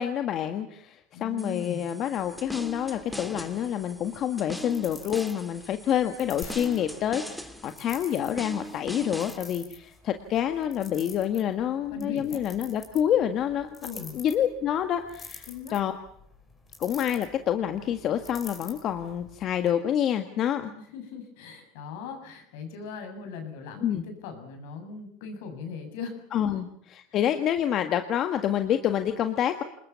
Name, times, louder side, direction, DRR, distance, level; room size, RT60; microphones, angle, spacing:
voice 1, 0.0-13.9 14.1-15.9 16.8-20.7 23.8-24.0 26.3-26.7 26.9-29.6, left 10 dB, 40° left, 8 dB, 1.6 m, -27 dB
voice 2, 1.1-1.9 11.9-12.4 13.8-14.2 15.5-15.8 20.9-26.2 26.4-26.5, left 5 dB, 75° left, 6 dB, 7.5 m, -39 dB
sound 1, 1.4-9.4, equal, ahead, 1.8 m, -41 dB
sound 2, 2.2-19.7, left 4 dB, 20° left, 5.2 m, -49 dB
sound 3, 6.4-9.3, left 5 dB, 55° left, 5.8 m, -49 dB
27.5 x 20.5 x 7.1 m, 0.66 s
supercardioid pair, 140°, 0 cm